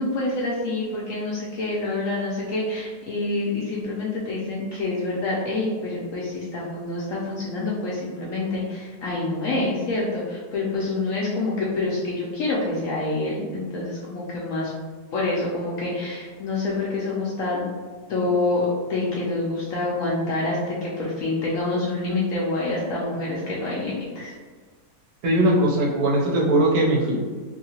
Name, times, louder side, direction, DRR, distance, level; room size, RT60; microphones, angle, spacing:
voice 1, 0.0-14.7 15.1-17.6 18.1-24.3, left 2 dB, 70° left, -5 dB, 0.8 m, -27 dB
voice 2, 25.2-27.2, right 1 dB, 70° right, -3 dB, 1.1 m, -20 dB
2.8 x 2.7 x 2.7 m, 1.5 s
omnidirectional pair, 1.8 m